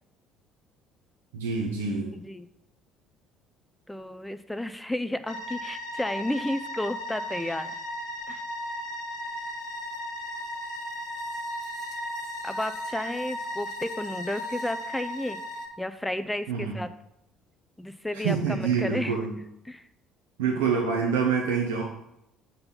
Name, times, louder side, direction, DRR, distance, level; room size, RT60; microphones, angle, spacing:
voice 1, 1.3-2.1 16.5-16.7 18.2-19.3 20.4-21.8, right 5 dB, 75° right, -2 dB, 1.1 m, -26 dB
voice 2, 2.1-2.5 3.9-7.8 8.3-8.4 12.4-15.4 15.8-16.9 17.8-19.2 19.7-19.9, left 1 dB, 10° left, 11 dB, 0.5 m, -32 dB
sound 1, 5.3-15.7, equal, 65° left, 1.5 m, -36 dB
6.6 x 4.1 x 5.6 m, 0.82 s
figure-of-eight pair, 55°, 0 cm